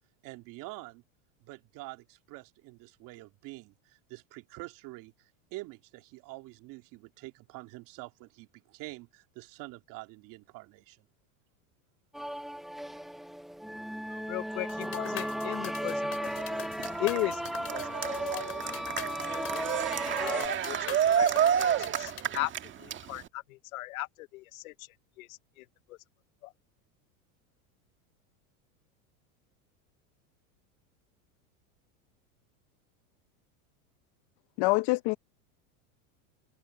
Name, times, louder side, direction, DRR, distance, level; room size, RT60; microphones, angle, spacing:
voice 1, 0.2-1.0 1.4-11.1, right 20 dB, 50° right, 2.5 m, -46 dB
sound 1, 12.1-20.5, equal, ahead, 0.7 m, -36 dB
voice 2, 14.0-16.3 16.6-18.0 18.3-19.4 20.2-22.5 22.8-24.9 25.2-26.0 26.4-26.5, left 20 dB, 75° left, 1.2 m, -38 dB
sound 2, 14.7-22.2, left 11 dB, 35° left, 5.0 m, -43 dB
Cheering, 16.3-23.3, right 9 dB, 30° right, 1.7 m, -30 dB
voice 3, 34.6-35.2, left 24 dB, 55° left, 1.0 m, -25 dB
supercardioid pair, 130°, 41 cm